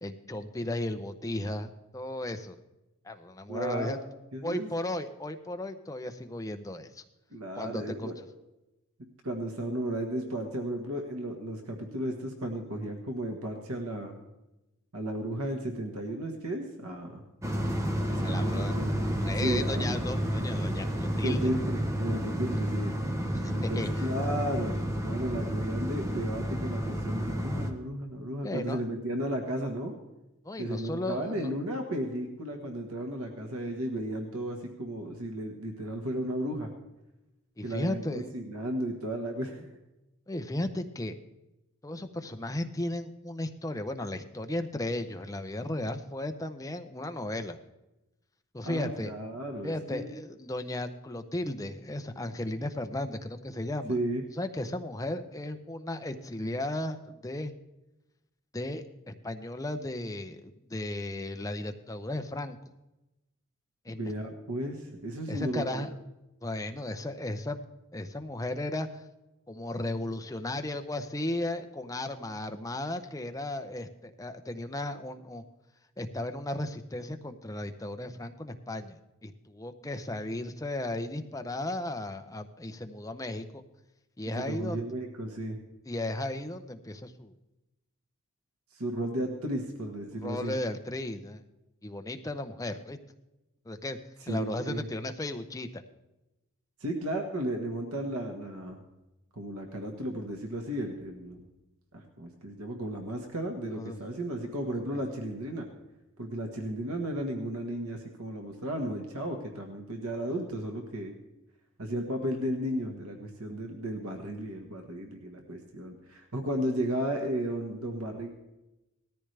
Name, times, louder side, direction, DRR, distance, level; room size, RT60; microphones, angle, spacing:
voice 1, 0.0-2.6 3.0-4.0 4.4-7.0 7.5-8.1 18.2-18.7 19.2-21.5 22.5-22.6 23.3-24.0 28.4-28.8 30.4-31.5 37.6-38.3 40.3-41.1 41.8-47.6 48.5-49.1 49.6-54.0 54.4-57.5 58.5-62.6 63.8-64.1 65.3-65.9 66.4-67.6 67.9-69.0 69.5-75.4 76.0-83.6 84.2-84.8 85.9-87.3 90.2-91.4 91.8-93.0 93.7-94.0 94.3-95.7 103.8-104.0, left 1 dB, 15° left, 7 dB, 0.6 m, -35 dB
voice 2, 3.5-4.0 4.3-4.7 7.3-8.1 9.0-14.1 14.9-17.2 18.1-18.9 19.4-20.0 21.2-22.9 23.5-24.7 25.0-29.9 30.6-36.7 37.6-39.7 48.6-50.2 53.9-54.2 64.0-65.9 84.3-85.6 88.7-90.5 94.2-94.8 96.8-98.8 99.3-101.4 101.9-105.6 106.2-111.1 111.8-118.3, right 1 dB, 85° right, 3 dB, 1.5 m, -34 dB
sound 1, 17.4-27.7, equal, 15° right, 1.0 m, -31 dB
18.5 x 13.5 x 3.3 m, 0.98 s
head